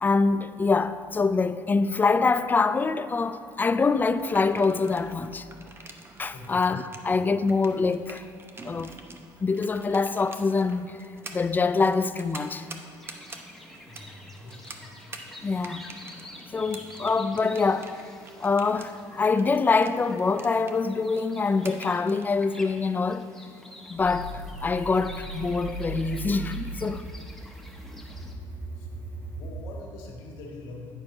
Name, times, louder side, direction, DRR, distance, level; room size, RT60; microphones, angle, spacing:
voice 1, 0.0-5.5 6.2-8.2 8.6-8.9 9.4-11.0 11.3-12.7 15.4-15.9 16.5-18.0 18.4-23.3 23.9-27.0, left 4 dB, 20° left, 0.3 m, -25 dB
sound 1, 4.2-22.2, right 3 dB, 30° right, 0.8 m, -48 dB
sound 2, 13.0-28.3, left 1 dB, ahead, 1.0 m, -47 dB
voice 2, 13.9-14.8 16.7-16.8 28.8-31.0, left 3 dB, 90° left, 1.5 m, -44 dB
sound 3, 24.0-29.5, right 2 dB, 60° right, 1.8 m, -38 dB
9.6 x 4.5 x 5.4 m
cardioid pair, 105°, 8 cm